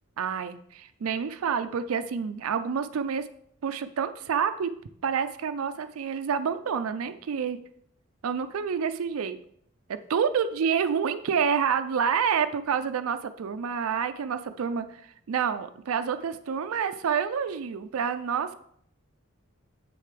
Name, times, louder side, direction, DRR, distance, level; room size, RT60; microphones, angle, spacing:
voice 1, 0.2-3.3 3.6-4.7 5.0-7.6 8.2-9.4 9.9-18.5, right 7 dB, 85° right, 10 dB, 0.4 m, -28 dB
7.7 x 6.6 x 3.2 m, 0.67 s
head